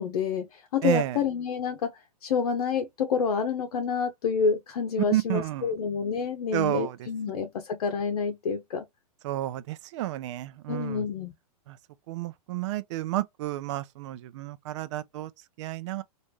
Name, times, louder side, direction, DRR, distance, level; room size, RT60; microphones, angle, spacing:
voice 1, 0.0-8.9 10.7-11.3, left 6 dB, 75° left, 0.9 m, -28 dB
voice 2, 0.8-1.2 5.1-5.7 6.5-7.0 9.2-11.0 11.7-11.8 12.1-15.3 15.6-16.0, right 15 dB, 50° right, 0.5 m, -30 dB
3.3 x 2.6 x 3.1 m
hypercardioid pair, 125°, 19 cm